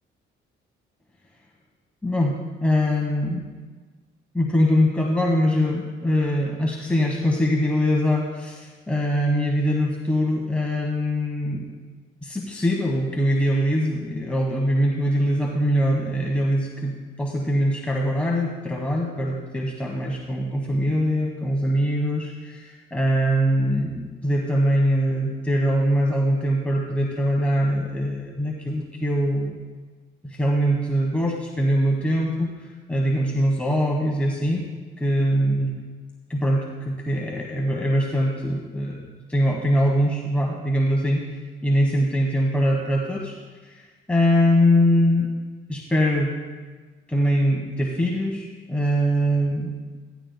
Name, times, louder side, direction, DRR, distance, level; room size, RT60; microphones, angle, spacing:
voice 1, 2.0-3.4 4.3-11.6 12.2-29.6 30.2-32.5 32.9-34.6 35.0-35.7 36.3-41.2 41.6-43.3 44.1-45.3 45.7-46.3 47.1-49.7, equal, 5° left, -1 dB, 1.3 m, -22 dB
16.5 x 13.0 x 2.2 m, 1.3 s
cardioid pair, 90°, 20 cm